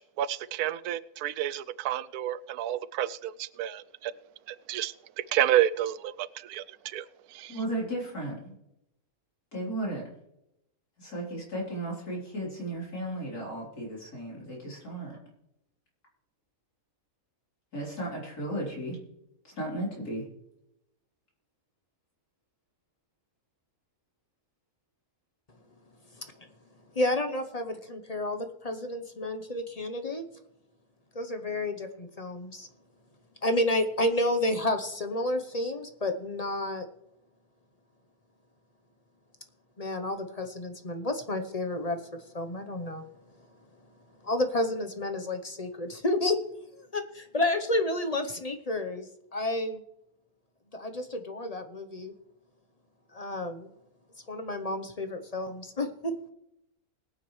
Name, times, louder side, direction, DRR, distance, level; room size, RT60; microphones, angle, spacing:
voice 1, 0.0-4.1 4.5-7.5, right 12 dB, 80° right, 17 dB, 1.1 m, -30 dB
voice 2, 7.5-8.6 9.5-10.1 11.0-15.2 17.7-19.0 19.4-20.2, right 1 dB, 90° left, -4 dB, 4.2 m, -35 dB
voice 3, 26.9-30.2 31.1-32.7 33.4-36.9 39.8-43.1 44.2-46.4 46.9-49.8 50.7-52.1 53.1-53.7 54.3-56.3, left 1 dB, 35° left, 7 dB, 0.7 m, -30 dB
21.0 x 9.2 x 3.2 m, 0.84 s
omnidirectional pair, 1.6 m